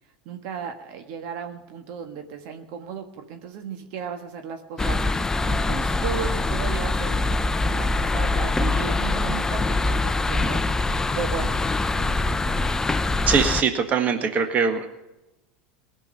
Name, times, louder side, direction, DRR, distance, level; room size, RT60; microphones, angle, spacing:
voice 1, 0.3-11.6 11.9-12.5, right 7 dB, 60° right, 6 dB, 1.6 m, -35 dB
sound 1, 4.8-13.6, left 2 dB, 10° left, 0.6 m, -24 dB
voice 2, 13.3-14.9, right 6 dB, 35° right, 7 dB, 1.6 m, -22 dB
19.0 x 6.4 x 10.0 m, 0.99 s
hypercardioid pair, 90°, 5 cm